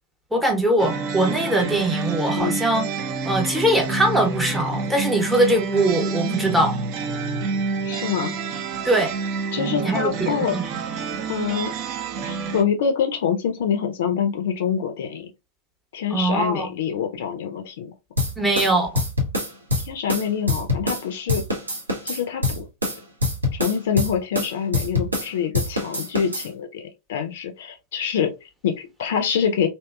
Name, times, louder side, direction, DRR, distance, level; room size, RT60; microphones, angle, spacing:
voice 1, 0.3-2.8 3.2-6.8 8.8-9.1 9.8-10.6 16.1-16.7 18.4-19.0, right 1 dB, 5° right, 0.8 m, -21 dB
sound 1, 0.8-12.6, right 4 dB, 45° right, 0.5 m, -28 dB
voice 2, 7.8-8.3 9.5-10.6 11.3-11.7 12.2-15.3 15.9-17.9 19.8-21.4 22.0-22.6 23.6-29.7, left 7 dB, 55° left, 0.5 m, -25 dB
sound 2, 18.2-21.0 21.3-25.3 25.5-26.5, left 2 dB, 80° right, 0.7 m, -25 dB
2.7 x 2.2 x 2.2 m
figure-of-eight pair, 90°, 0 cm